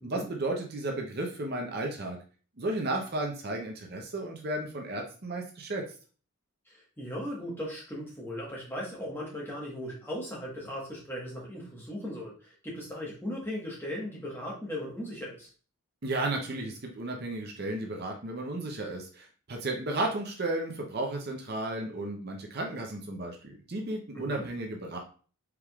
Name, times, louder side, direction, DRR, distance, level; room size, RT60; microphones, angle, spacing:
voice 1, 0.0-2.2 2.6-5.8 16.0-25.0, right 2 dB, 45° right, 2 dB, 0.7 m, -33 dB
voice 2, 6.7-15.5 24.1-24.4, equal, 10° left, -4 dB, 1.2 m, -38 dB
4.6 x 3.6 x 2.3 m, 0.39 s
head